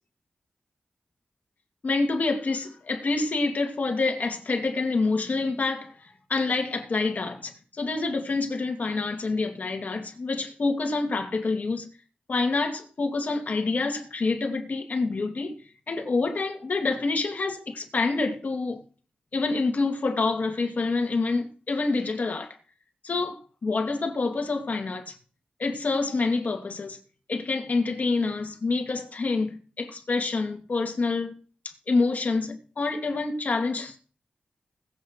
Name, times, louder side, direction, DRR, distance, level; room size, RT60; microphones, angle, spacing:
voice 1, 1.8-11.9 12.3-15.5 15.9-18.8 19.3-22.6 23.0-25.2 25.6-27.0 27.3-31.3 31.9-34.0, left 3 dB, 60° left, 2.3 m, -27 dB
20.5 x 8.3 x 3.1 m
cardioid pair, 65°, 3 cm